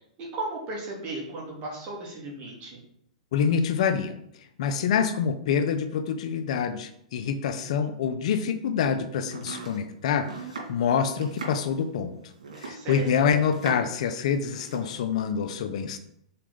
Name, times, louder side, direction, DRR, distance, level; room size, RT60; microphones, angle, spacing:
voice 1, 0.2-2.8 12.7-13.1, right 2 dB, 35° right, -3 dB, 2.9 m, -35 dB
voice 2, 3.3-4.1 4.6-10.3 10.7-12.1 12.6-16.0, left 7 dB, 65° left, 9 dB, 0.8 m, -26 dB
Domestic sounds home sounds, 9.2-14.0 14.3-14.9, right 4 dB, 90° right, 2.7 m, -40 dB
5.9 x 4.4 x 5.1 m, 0.72 s
hypercardioid pair, 125°, 4 cm